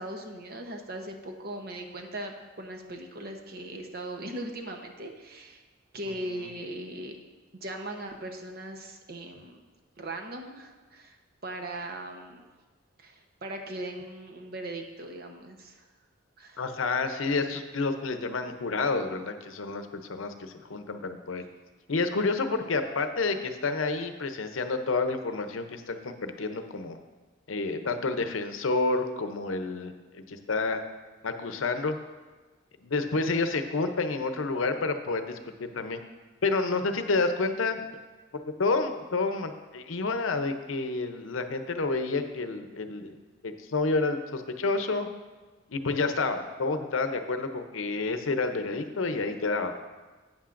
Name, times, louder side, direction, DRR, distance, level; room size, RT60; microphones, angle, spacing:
voice 1, 0.0-5.6 5.9-7.1 7.6-9.6 10.0-11.2 11.4-12.4 13.0-15.8 16.4-16.6, right 1 dB, 50° right, 4 dB, 0.9 m, -39 dB
voice 2, 16.6-21.4 21.9-27.0 27.5-30.8 31.2-32.0 32.8-36.0 36.4-37.8 38.3-43.1 43.4-45.1 45.7-49.7, left 3 dB, 80° left, 8 dB, 0.7 m, -29 dB
11.5 x 8.9 x 2.5 m, 1.3 s
head